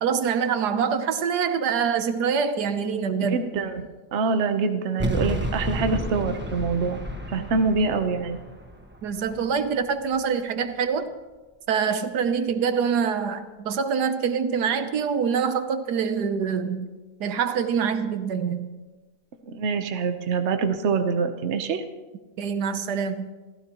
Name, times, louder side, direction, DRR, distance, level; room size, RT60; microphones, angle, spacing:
voice 1, 0.0-3.4 7.4-7.5 9.0-11.1 11.7-16.9 17.2-18.7 22.4-23.3, right 6 dB, 80° right, 10 dB, 1.4 m, -25 dB
voice 2, 3.3-7.0 7.3-8.4 19.5-21.8, right 4 dB, 50° right, 7 dB, 1.1 m, -25 dB
sound 1, 5.0-10.2, equal, 10° right, 1.1 m, -32 dB
28.0 x 15.0 x 3.0 m, 1.3 s
omnidirectional pair, 1.7 m